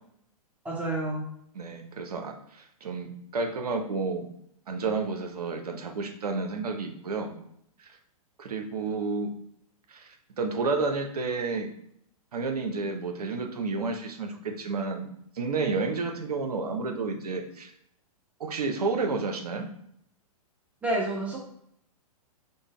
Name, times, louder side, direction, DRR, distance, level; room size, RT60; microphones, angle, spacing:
voice 1, 0.6-1.2 20.8-21.4, right 1 dB, 5° right, -2 dB, 0.9 m, -29 dB
voice 2, 1.5-4.3 4.7-7.3 7.8-8.0 8.4-9.3 9.9-11.7 12.3-15.1 15.4-17.7 18.4-19.6, right 4 dB, 85° right, 4 dB, 0.6 m, -31 dB
3.9 x 2.0 x 3.7 m, 0.71 s
hypercardioid pair, 120°, 19 cm